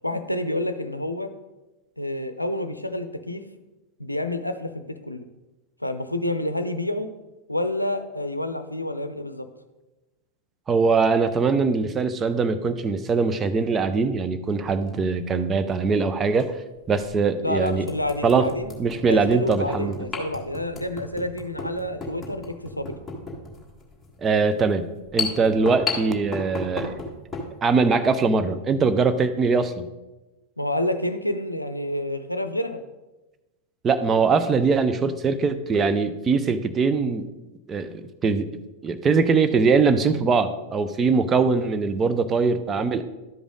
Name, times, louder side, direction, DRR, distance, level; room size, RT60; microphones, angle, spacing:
voice 1, 0.0-1.3 2.0-3.4 4.0-5.2 5.8-7.1 7.5-9.5 17.4-18.7 19.1-22.9 30.6-32.8, left 1 dB, 85° left, 9 dB, 0.5 m, -28 dB
voice 2, 10.7-16.5 16.9-17.9 18.2-18.5 18.8-20.0 24.2-24.9 25.1-26.9 27.6-29.8 33.8-37.3 37.7-38.5 38.8-43.0, right 4 dB, 20° right, 10 dB, 0.6 m, -22 dB
sound 1, 14.7-14.9 16.3-16.4 17.0-17.1 17.6-27.5, left 4 dB, 10° left, 1.9 m, -34 dB
12.0 x 5.1 x 3.7 m, 1.1 s
figure-of-eight pair, 90°, 0 cm